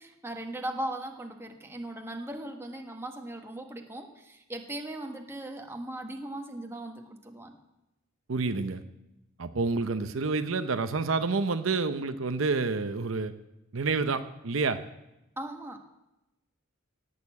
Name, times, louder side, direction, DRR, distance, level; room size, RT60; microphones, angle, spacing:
voice 1, 0.0-7.6 15.4-15.8, right 1 dB, 10° right, 3 dB, 1.3 m, -38 dB
voice 2, 8.3-8.8 9.4-13.3 13.7-14.8, right 4 dB, 75° right, 10 dB, 0.7 m, -28 dB
17.5 x 6.8 x 8.5 m, 0.94 s
head